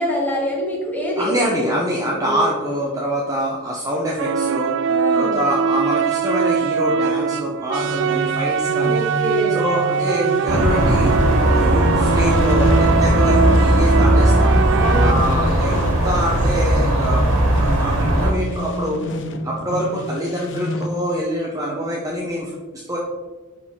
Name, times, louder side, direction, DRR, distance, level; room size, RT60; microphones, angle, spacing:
voice 1, 0.0-1.3 1.6-1.8 2.2-2.4 4.9-5.4 8.8-9.6 11.3-11.7 14.8-15.3, equal, 10° left, -4 dB, 1.9 m, -25 dB
voice 2, 1.2-9.1 9.5-14.5 15.0-19.0 19.4-23.0, equal, 15° right, -4 dB, 0.9 m, -25 dB
sound 1, 4.2-15.1, right 6 dB, 55° right, 0.3 m, -22 dB
sound 2, 7.8-20.9, left 1 dB, 55° left, 0.8 m, -28 dB
sound 3, 10.5-18.3, right 1 dB, 70° right, 1.8 m, -17 dB
11.0 x 4.3 x 3.8 m, 1.3 s
head